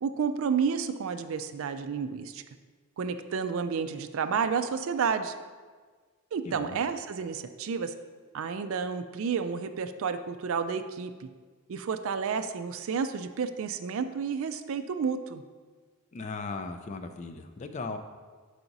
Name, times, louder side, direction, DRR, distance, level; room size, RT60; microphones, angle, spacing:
voice 1, 0.0-2.4 3.0-5.3 6.3-7.9 8.3-11.3 11.7-15.4, right 6 dB, 65° right, 10 dB, 0.3 m, -31 dB
voice 2, 6.4-6.8 16.1-18.0, left 3 dB, 30° left, 6 dB, 0.3 m, -37 dB
5.8 x 4.8 x 3.9 m, 1.5 s
head